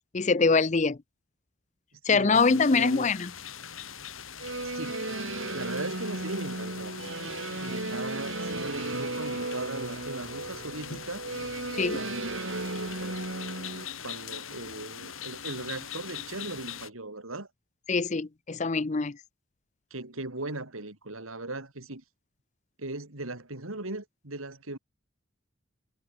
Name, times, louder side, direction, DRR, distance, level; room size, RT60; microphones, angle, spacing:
voice 1, 0.1-1.0 2.1-3.3 11.8-12.0 17.9-19.2, left 4 dB, 35° left, 0.5 m, -24 dB
voice 2, 2.1-3.1 4.6-7.0 7.6-11.3 11.9-13.2 14.0-17.5 19.9-22.0 22.8-24.8, right 2 dB, 90° right, 3.7 m, -38 dB
sound 1, 2.3-16.9, left 7 dB, 80° left, 4.0 m, -42 dB
sound 2, 4.4-13.9, right 2 dB, 70° right, 3.4 m, -35 dB
head